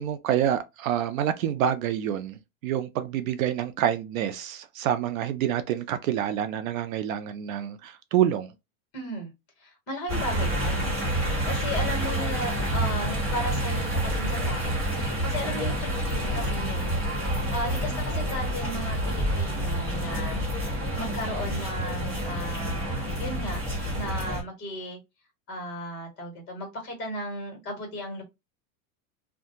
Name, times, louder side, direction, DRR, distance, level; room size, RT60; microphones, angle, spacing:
voice 1, 0.0-8.5, right 10 dB, 70° right, 0.5 m, -27 dB
voice 2, 8.9-9.3 9.6-10.9 11.4-17.0 17.5-20.4 20.9-23.6 23.9-25.0 25.5-28.2, equal, 25° left, 1.3 m, -35 dB
sound 1, 10.1-24.4, right 1 dB, 20° right, 1.3 m, -28 dB
2.5 x 2.3 x 2.8 m
supercardioid pair, 170°, 42 cm